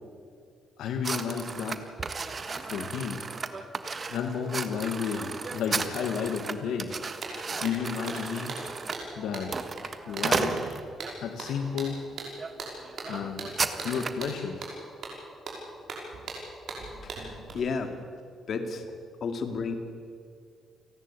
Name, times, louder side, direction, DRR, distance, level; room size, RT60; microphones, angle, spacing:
voice 1, 0.8-1.8 2.6-3.2 4.1-6.9 7.6-8.5 9.2-9.6 10.1-10.6 11.2-12.0 13.1-13.5 13.8-14.6, left 7 dB, 80° left, 4 dB, 1.8 m, -32 dB
sound 1, 1.0-11.2 11.8-12.0 12.4-12.5 12.8-14.3, right 4 dB, 35° right, 1.5 m, -34 dB
sound 2, 6.8-6.9 7.2-17.5, right 3 dB, 65° right, 5.9 m, -40 dB
voice 2, 17.0-17.9 18.5-19.7, left 4 dB, 55° left, 6 dB, 2.5 m, -33 dB
29.5 x 11.0 x 8.7 m, 2.2 s
cardioid pair, 90°, 0 cm